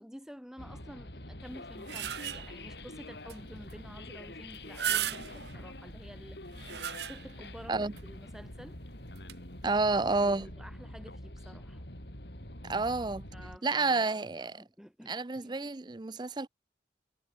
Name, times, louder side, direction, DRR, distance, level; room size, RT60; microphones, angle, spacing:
voice 1, 0.0-6.4 7.1-8.8 10.2-11.8 13.3-14.2 14.5-15.5, equal, 5° right, 6.9 m, -50 dB
sound 1, 0.6-13.6, left 1 dB, 75° left, 6.8 m, -46 dB
sound 2, 1.5-2.7 3.3-3.4 3.7-3.8 4.5-5.6 6.3-7.5 8.0-8.1 9.1-9.3, right 9 dB, 75° right, 1.0 m, -36 dB
voice 2, 9.6-10.5 12.6-13.3 13.6-14.6 15.1-16.5, right 3 dB, 25° right, 0.5 m, -30 dB
head